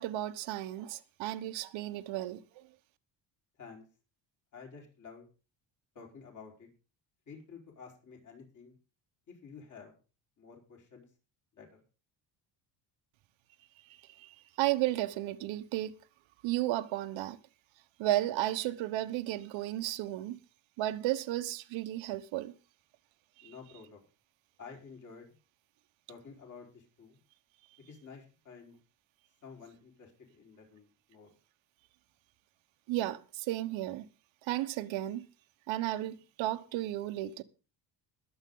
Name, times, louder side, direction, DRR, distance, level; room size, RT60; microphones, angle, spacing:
voice 1, 0.0-2.6 13.9-15.9 16.4-17.4 18.0-20.4 20.8-22.5 23.4-23.5 32.9-34.0 34.4-35.2 35.7-37.4, right 15 dB, 90° right, 1.2 m, -34 dB
voice 2, 4.5-5.3 5.9-6.7 7.3-8.8 9.3-9.9 10.4-11.1 11.5-11.7 23.4-24.0 24.6-25.3 26.1-27.2 27.8-28.7 29.4-31.3, left 5 dB, 40° left, 4.6 m, -51 dB
21.5 x 8.1 x 3.9 m
cardioid pair, 145°, 45 cm